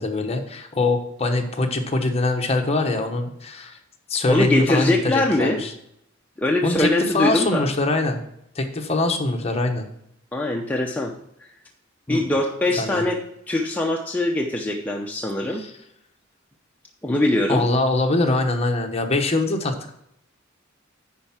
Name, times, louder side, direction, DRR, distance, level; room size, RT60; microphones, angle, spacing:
voice 1, 0.0-3.8 4.1-5.7 6.6-6.9 7.1-8.2 8.5-9.8 12.1-12.3 12.8-13.0 15.6-15.7 17.5-19.9, left 2 dB, 30° left, 3 dB, 1.1 m, -23 dB
voice 2, 4.3-5.6 6.4-7.7 10.3-11.1 11.4-11.5 12.1-13.2 13.5-15.7 17.0-17.6, left 1 dB, 10° left, 0 dB, 0.7 m, -22 dB
10.0 x 4.6 x 5.9 m, 0.76 s
head